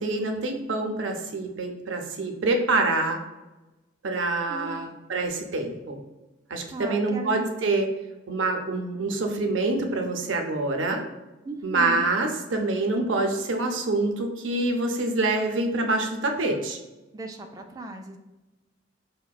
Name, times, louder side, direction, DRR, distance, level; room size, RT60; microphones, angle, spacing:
voice 1, 0.0-3.2 4.0-6.0 6.5-7.9 8.3-11.0 11.6-16.8, right 2 dB, 85° right, 4 dB, 0.5 m, -26 dB
voice 2, 4.5-4.9 6.7-7.7 11.4-12.1 17.1-18.2, right 2 dB, 20° right, 3 dB, 0.3 m, -37 dB
4.9 x 2.1 x 2.3 m, 1.1 s
head